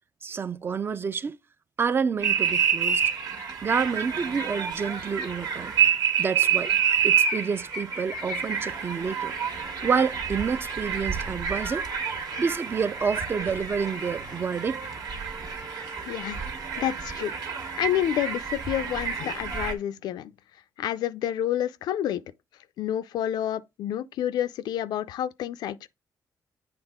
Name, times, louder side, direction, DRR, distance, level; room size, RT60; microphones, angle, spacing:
voice 1, 0.2-1.4 1.8-3.0 3.6-5.7 6.2-6.7 7.0-9.3 9.8-11.9 12.4-14.8, right 6 dB, 35° right, 0.4 m, -28 dB
sound 1, 2.2-19.7, right 7 dB, 70° right, 1.5 m, -28 dB
voice 2, 16.1-17.3 17.8-20.3 20.8-22.2 22.8-25.9, left 11 dB, 90° left, 0.4 m, -29 dB
8.1 x 3.4 x 3.5 m
cardioid pair, 115°, 7 cm